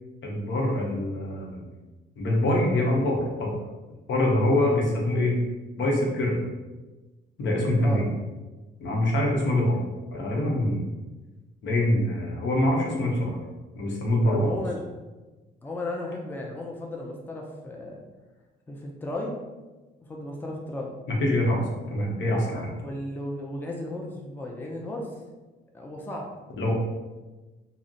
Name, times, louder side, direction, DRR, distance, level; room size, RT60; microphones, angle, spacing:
voice 1, 0.2-1.6 2.2-3.6 4.1-5.3 5.8-6.4 7.4-8.0 8.8-9.8 10.1-10.9 11.6-13.4 13.8-14.4 21.1-22.7 26.6-26.7, left 1 dB, 70° left, -2 dB, 0.8 m, -24 dB
voice 2, 14.2-14.8 15.6-18.0 18.7-19.4 20.1-20.9 21.9-22.1 22.5-25.2 25.7-26.3, left 1 dB, 10° left, -1 dB, 0.4 m, -35 dB
2.4 x 2.1 x 3.7 m, 1.2 s
cardioid pair, 90°, 20 cm